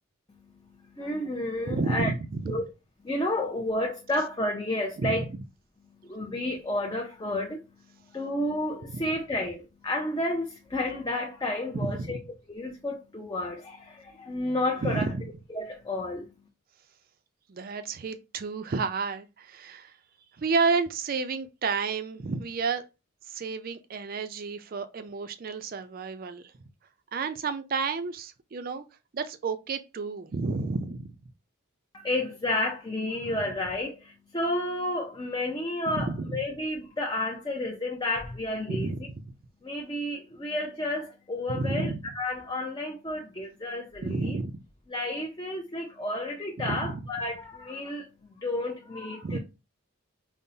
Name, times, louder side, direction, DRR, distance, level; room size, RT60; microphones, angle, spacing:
voice 1, 0.3-2.1 2.5-2.7 3.0-5.3 6.0-7.7 8.1-12.2 12.5-15.1 15.5-16.3 31.9-38.9 39.6-44.4 44.9-48.1 48.4-49.4, left 1 dB, 20° left, 0.5 m, -31 dB
voice 2, 1.7-2.6 5.0-5.3 8.9-9.0 11.7-12.2 14.8-15.2 17.5-19.9 20.4-22.8 23.3-26.5 27.1-28.8 29.1-31.1 35.9-36.4 38.7-39.2 41.5-42.0 44.0-44.6 46.6-47.0 49.2-49.4, right 4 dB, 40° right, 0.4 m, -31 dB
5.3 x 2.0 x 2.7 m
head